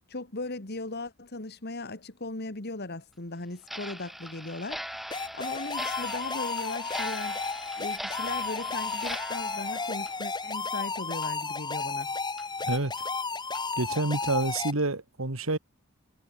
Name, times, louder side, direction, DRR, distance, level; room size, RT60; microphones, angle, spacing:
voice 1, 0.1-4.9 5.3-7.4 7.8-12.1, left 2 dB, 55° left, 2.4 m, -38 dB
Clock, 3.6-10.9 11.2-11.3 11.8-11.9 12.4-12.5 13.0-13.1 13.5-13.6 14.1-14.3, equal, ahead, 6.4 m, -41 dB
sound 1, 5.1-14.7, left 4 dB, 20° left, 6.0 m, -33 dB
voice 2, 12.6-12.9 13.8-15.6, right 2 dB, 85° right, 2.1 m, -28 dB
head